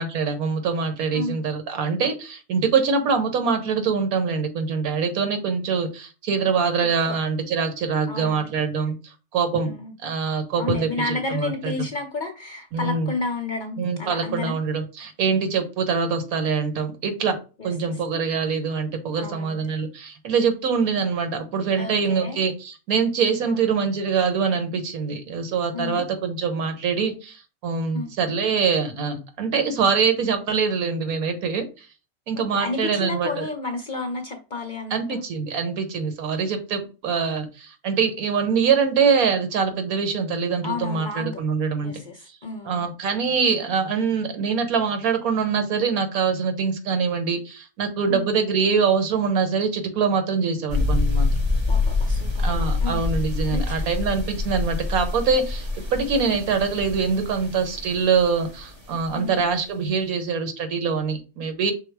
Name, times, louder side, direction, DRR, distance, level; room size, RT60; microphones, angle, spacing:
voice 1, 0.0-9.0 9.3-9.7 10.0-11.7 12.7-13.1 13.8-17.4 17.6-31.9 32.3-33.5 34.9-41.9 42.6-51.3 52.4-61.7, right 5 dB, 80° right, 7 dB, 1.4 m, -24 dB
voice 2, 8.1-8.5 9.6-9.9 10.5-14.5 17.6-17.7 19.2-19.6 21.7-22.5 23.4-23.6 25.7-26.0 27.9-28.1 32.4-35.2 40.6-41.4 41.8-42.9 48.1-48.3 51.7-53.0 53.5-53.9 56.3-56.4 59.1-59.4, left 3 dB, 45° left, 3 dB, 0.7 m, -31 dB
sound 1, 50.7-59.1, left 3 dB, 25° right, 0.7 m, -26 dB
5.6 x 2.0 x 4.5 m, 0.32 s
omnidirectional pair, 1.5 m